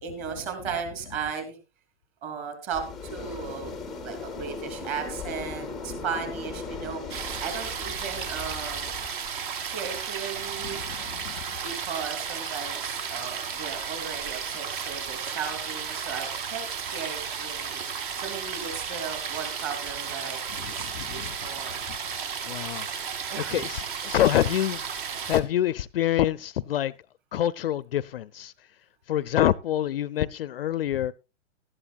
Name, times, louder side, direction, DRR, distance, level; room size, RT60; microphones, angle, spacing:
voice 1, 0.0-1.6 2.2-8.9 9.6-10.8 11.6-17.8 18.2-21.8 23.3-23.6, right 6 dB, 25° right, 3.3 m, -36 dB
sound 1, 2.7-9.1, left 4 dB, ahead, 0.7 m, -38 dB
sound 2, 7.1-25.4, right 7 dB, 45° right, 2.0 m, -34 dB
voice 2, 10.6-11.3 20.8-21.3 22.4-22.9 23.4-24.8 25.3-26.9 27.3-28.5 29.1-31.1, left 12 dB, 55° left, 0.6 m, -26 dB
17.5 x 12.5 x 2.4 m
hypercardioid pair, 160°, 35 cm